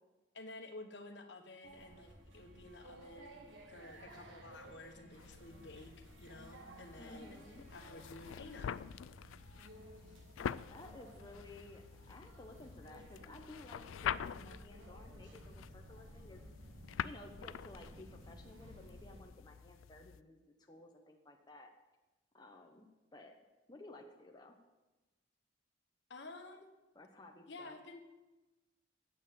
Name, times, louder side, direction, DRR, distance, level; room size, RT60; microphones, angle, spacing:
voice 1, 0.3-7.4 7.7-8.8 26.1-26.7 27.5-28.0, left 2 dB, 60° left, 5 dB, 1.2 m, -52 dB
sound 1, 1.6-19.2, right 1 dB, 75° right, 1.6 m, -56 dB
sound 2, 5.2-20.2, left 8 dB, 90° left, 0.3 m, -46 dB
voice 2, 7.0-7.7 10.7-16.4 17.0-21.7 22.3-23.4 23.7-24.6 26.9-27.8, left 2 dB, 20° left, 2 dB, 0.8 m, -55 dB
8.9 x 8.5 x 7.4 m, 1.1 s
head